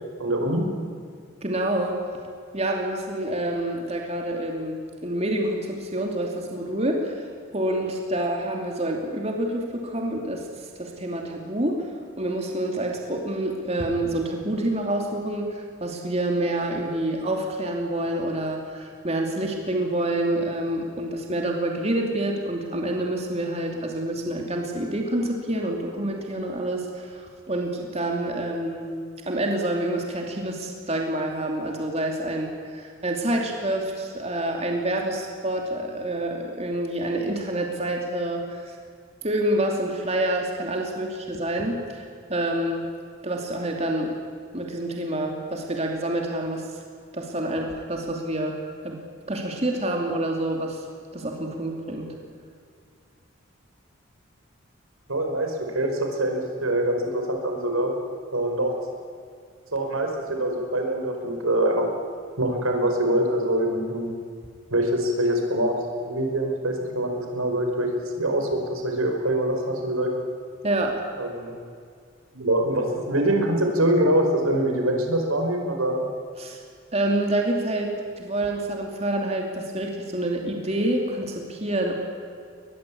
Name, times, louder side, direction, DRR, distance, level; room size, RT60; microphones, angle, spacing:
voice 1, 0.2-0.7 55.1-57.9 58.3-58.7 59.7-61.9 62.4-64.2 64.7-67.9 68.1-70.1 71.2-71.5 72.3-76.0, right 1 dB, 85° right, 2 dB, 5.0 m, -24 dB
voice 2, 1.4-2.0 2.5-11.9 12.2-29.0 29.3-38.7 39.2-42.0 42.3-42.9 43.2-44.1 44.5-46.7 47.1-48.6 48.8-49.0 49.3-50.8 51.1-52.1 70.6-71.0 76.4-76.6 76.9-81.9, right 1 dB, 30° right, 1 dB, 2.8 m, -27 dB
23.5 x 20.5 x 8.7 m, 2.2 s
head